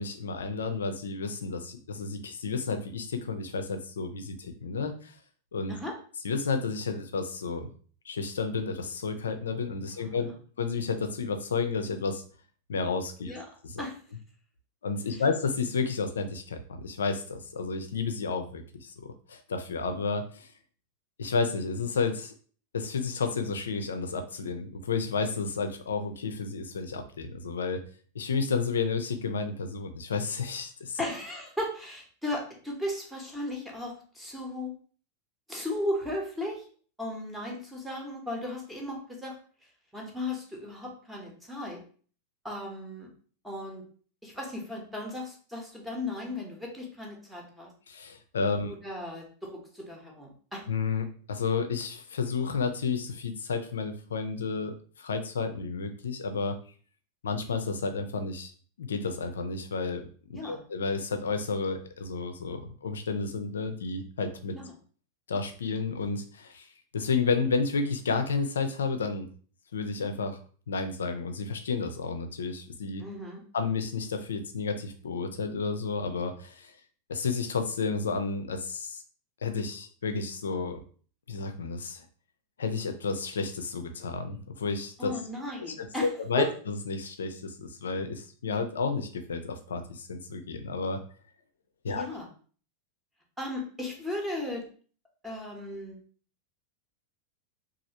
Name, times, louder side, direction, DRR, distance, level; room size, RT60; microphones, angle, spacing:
voice 1, 0.0-5.1 5.5-5.7 6.2-7.7 8.1-10.3 10.6-12.2 12.7-13.3 13.6-13.8 14.8-18.9 19.3-20.5 21.2-22.3 22.7-27.8 28.1-31.0 47.9-48.7 50.7-56.6 57.2-58.5 58.8-60.0 60.3-64.6 65.3-69.3 69.7-70.4 70.7-73.0 73.5-76.7 77.1-79.0 79.4-80.8 81.3-82.0 82.6-85.2 85.8-91.0 91.8-92.1, left 4 dB, 65° left, 7 dB, 0.4 m, -31 dB
voice 2, 9.9-10.2 13.2-13.4 13.8-14.0 15.1-15.2 31.0-34.7 35.5-36.7 37.0-39.4 39.9-41.8 42.4-43.1 43.4-43.8 44.2-47.7 48.6-50.6 60.3-60.6 64.6-64.7 73.0-73.4 85.0-86.1 86.4-86.5 91.9-92.3 93.4-94.6 95.2-96.0, left 1 dB, 5° right, -1 dB, 0.8 m, -36 dB
3.1 x 2.4 x 2.7 m, 0.43 s
figure-of-eight pair, 90°, 0 cm